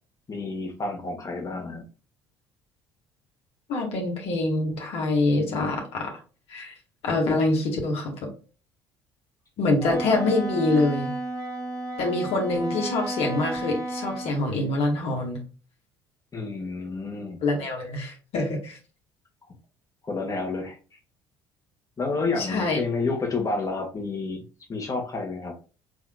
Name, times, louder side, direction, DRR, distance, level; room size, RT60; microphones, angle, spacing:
voice 1, 0.3-1.9 16.3-17.4 20.0-20.8 22.0-24.4 24.7-25.6, left 3 dB, 25° left, 2 dB, 1.6 m, -29 dB
voice 2, 3.7-6.1 6.5-6.7 7.0-8.3 9.6-11.1 12.0-15.4 17.4-18.8 22.4-22.8, left 2 dB, 55° left, 0 dB, 1.6 m, -25 dB
Wind instrument woodwind instrument, 9.8-14.3, right 1 dB, 25° right, 1.3 m, -32 dB
6.1 x 3.6 x 2.3 m, 0.35 s
figure-of-eight pair, 55°, 12 cm